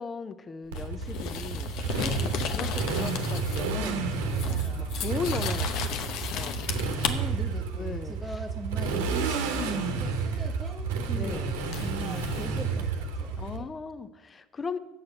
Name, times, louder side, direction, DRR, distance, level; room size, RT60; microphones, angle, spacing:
voice 1, 0.0-6.7 7.7-8.4 11.1-11.6 13.4-14.8, left 4 dB, 30° left, 12 dB, 0.7 m, -38 dB
sound 1, 0.7-3.8 4.1-7.1 10.3-10.5 11.7-12.4, left 7 dB, 60° left, 0.8 m, -35 dB
Motorcycle, 0.7-13.6, right 4 dB, 75° right, 1.0 m, -30 dB
voice 2, 2.0-2.6 4.2-5.2 7.0-11.5 11.7-13.8, right 2 dB, 20° right, 0 dB, 0.9 m, -41 dB
7.3 x 6.4 x 8.0 m, 1.0 s
hypercardioid pair, 60°, 0 cm